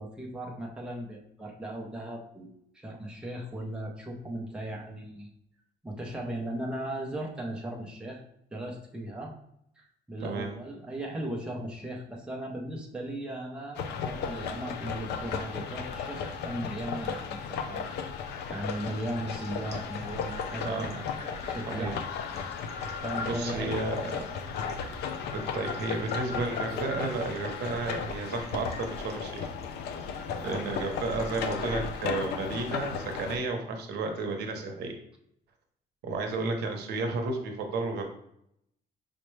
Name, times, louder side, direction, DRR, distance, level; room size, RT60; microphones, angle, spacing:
voice 1, 0.0-5.3 5.8-8.2 8.5-9.3 9.8-17.8 18.5-22.0 23.0-23.9 30.4-30.8, right 1 dB, 5° right, -1 dB, 0.5 m, -37 dB
voice 2, 10.2-10.6 20.6-21.0 21.7-22.0 22.8-23.0 23.3-24.2 25.3-29.5 30.4-34.9 36.0-38.1, right 3 dB, 80° right, 4 dB, 0.7 m, -32 dB
sound 1, 13.7-33.4, left 6 dB, 90° left, 0.4 m, -35 dB
sound 2, 15.9-16.1 17.0-17.2 17.8-17.9 18.3-32.5, left 3 dB, 40° left, 0.6 m, -46 dB
5.1 x 2.1 x 3.1 m, 0.75 s
cardioid pair, 170°, 17 cm